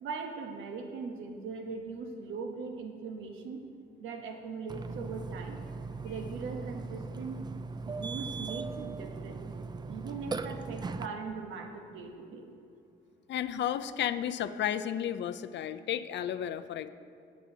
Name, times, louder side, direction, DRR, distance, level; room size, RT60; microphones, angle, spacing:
voice 1, 0.0-3.6 4.0-5.6 6.0-7.4 7.9-9.4 9.9-12.5, right 4 dB, 85° right, 4 dB, 1.1 m, -40 dB
Burping eructation, 4.7-11.1, right 4 dB, 20° right, 0.4 m, -39 dB
voice 2, 13.3-16.9, left 10 dB, 65° left, 12 dB, 0.5 m, -33 dB
17.5 x 7.2 x 2.8 m, 2.6 s
cardioid pair, 90°, 20 cm